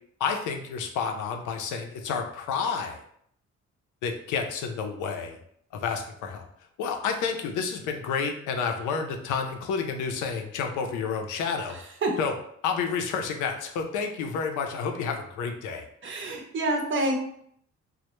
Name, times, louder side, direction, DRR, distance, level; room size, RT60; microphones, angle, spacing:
voice 1, 0.2-3.0 4.0-5.4 5.7-6.5 6.8-11.8 12.2-12.3 12.6-15.8, left 5 dB, 85° left, 4 dB, 0.5 m, -30 dB
voice 2, 11.7-12.1 16.0-17.1, right 2 dB, 40° right, 2 dB, 0.6 m, -28 dB
2.1 x 2.0 x 2.9 m, 0.67 s
cardioid pair, 90°, 30 cm